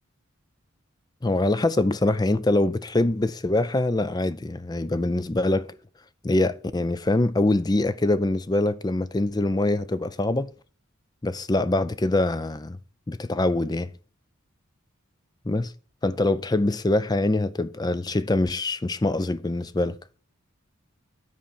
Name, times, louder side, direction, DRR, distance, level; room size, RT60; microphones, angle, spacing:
voice 1, 1.2-5.7 6.2-10.5 11.2-12.8 13.1-13.9 15.5-15.7 16.0-20.0, left 2 dB, 20° left, 0.4 m, -24 dB
10.5 x 4.3 x 7.0 m
head